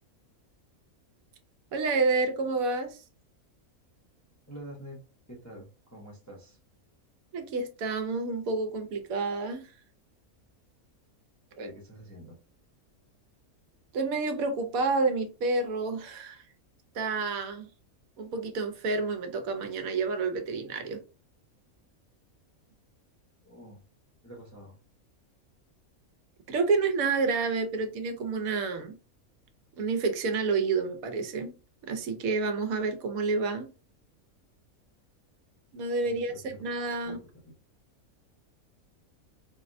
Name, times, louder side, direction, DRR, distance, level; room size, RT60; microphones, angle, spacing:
voice 1, 1.7-3.0 7.3-9.6 11.6-11.7 13.9-16.4 16.9-17.7 18.2-21.0 26.5-29.0 29.8-31.5 31.9-33.7 35.7-37.2, right 4 dB, 80° right, 7 dB, 1.0 m, -29 dB
voice 2, 4.5-5.0 5.3-6.6 11.5-12.3 23.4-23.8 24.2-24.8 36.0-36.6 37.0-37.2, equal, 20° left, -3 dB, 0.5 m, -46 dB
4.0 x 2.0 x 2.5 m, 0.34 s
omnidirectional pair, 1.5 m